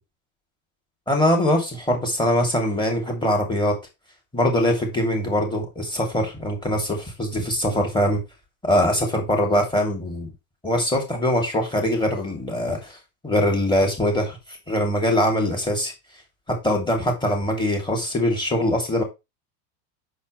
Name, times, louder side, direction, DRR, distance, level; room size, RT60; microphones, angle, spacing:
voice 1, 1.1-3.8 4.3-8.2 8.6-10.3 10.6-13.0 13.2-15.9 16.5-19.0, left 1 dB, 10° left, 2.8 m, -22 dB
7.9 x 6.7 x 3.2 m
supercardioid pair, 150°, 46 cm